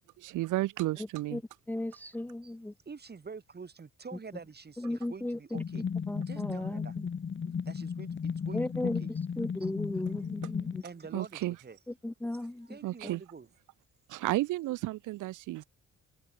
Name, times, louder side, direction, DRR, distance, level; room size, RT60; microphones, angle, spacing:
voice 1, 0.2-1.4 7.4-7.5 10.4-10.5 11.1-11.6 12.8-13.2 14.1-15.6, right 17 dB, 85° right, 1.0 m, -32 dB
voice 2, 1.7-2.7 4.8-5.4 6.1-6.8 8.5-9.0 9.4-10.8 12.0-12.7, left 1 dB, 5° left, 0.7 m, -35 dB
voice 3, 2.9-5.9 6.3-7.0 7.6-9.2 9.6-10.0 10.8-11.8 12.3-13.5 14.7-14.8, right 5 dB, 35° right, 4.3 m, -47 dB
sound 1, 5.5-10.8, left 6 dB, 40° left, 2.4 m, -35 dB
cardioid pair, 90°, 30 cm